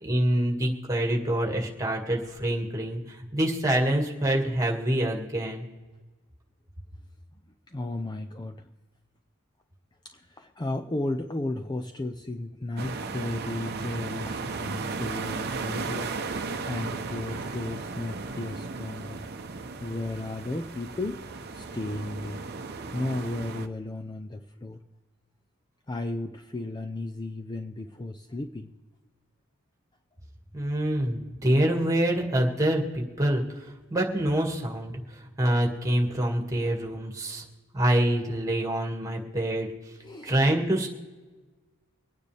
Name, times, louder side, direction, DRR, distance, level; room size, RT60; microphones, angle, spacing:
voice 1, 0.0-5.6 30.5-33.4 33.9-34.9 35.4-37.4 37.7-39.7 40.2-40.9, right 1 dB, 15° right, 1 dB, 2.0 m, -26 dB
voice 2, 7.7-8.6 10.0-19.2 19.8-21.2 21.5-22.4 22.9-24.8 25.9-28.7 40.0-40.4, left 2 dB, 20° left, 6 dB, 0.5 m, -34 dB
sound 1, 12.8-23.7, right 4 dB, 50° right, 0.8 m, -35 dB
25.0 x 9.3 x 3.4 m, 1.3 s
head